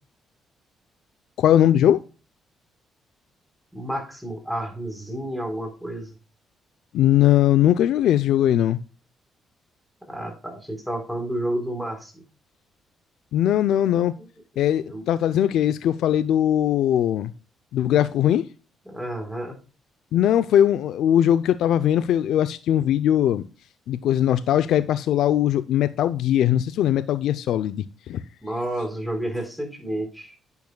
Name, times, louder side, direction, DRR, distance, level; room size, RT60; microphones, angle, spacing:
voice 1, 1.4-2.0 6.9-8.8 13.3-14.1 14.6-17.3 17.7-18.4 20.1-23.4 23.9-28.2, left 11 dB, 80° left, 0.5 m, -20 dB
voice 2, 3.7-6.1 10.1-12.2 14.2-14.3 14.8-15.0 18.9-19.6 28.4-30.3, right 1 dB, ahead, 4.1 m, -30 dB
10.5 x 8.3 x 2.2 m
cardioid pair, 90°, 0 cm